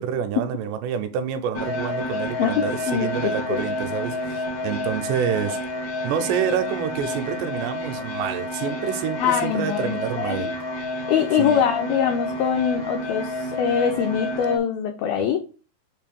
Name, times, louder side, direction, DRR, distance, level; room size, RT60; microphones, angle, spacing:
voice 1, 0.0-5.6 6.0-10.5 11.4-11.6, right 8 dB, 80° right, 2.8 m, -27 dB
sound 1, 1.5-14.6, left 1 dB, 70° left, 1.1 m, -29 dB
voice 2, 2.4-3.6 9.2-10.5 11.1-15.4, left 8 dB, 90° left, 2.1 m, -23 dB
7.4 x 2.7 x 5.2 m
omnidirectional pair, 5.0 m